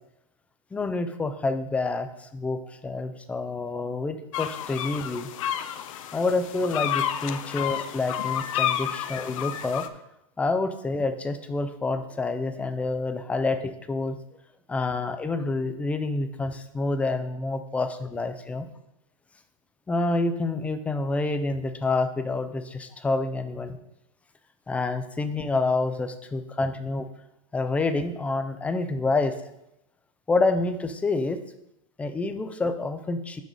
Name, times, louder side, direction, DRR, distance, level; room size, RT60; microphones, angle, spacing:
voice 1, 0.7-5.3 6.1-9.9 10.4-14.2 14.7-18.7 19.9-23.8 24.7-27.1 27.5-29.3 30.3-31.4 32.0-33.4, left 3 dB, 5° left, 9 dB, 0.4 m, -28 dB
sound 1, 4.3-9.9, left 10 dB, 65° left, 0.6 m, -30 dB
6.2 x 5.2 x 6.2 m, 0.84 s
supercardioid pair, 145°, 18 cm